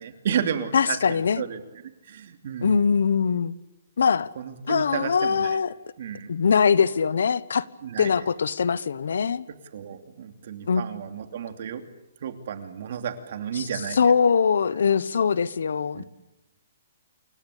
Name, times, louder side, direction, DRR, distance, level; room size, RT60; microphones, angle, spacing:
voice 1, 0.0-1.6 2.0-2.8 4.4-5.6 6.0-6.3 7.8-8.1 9.7-11.8 12.2-14.1 15.9-16.0, right 8 dB, 45° right, 7 dB, 2.8 m, -32 dB
voice 2, 0.7-1.4 2.6-3.5 4.0-4.3 4.7-5.7 6.3-7.6 8.0-9.5 10.7-10.8 13.6-13.7 14.0-16.0, left 6 dB, 80° left, 18 dB, 1.2 m, -22 dB
28.5 x 23.5 x 8.4 m, 0.97 s
hypercardioid pair, 175°, 0 cm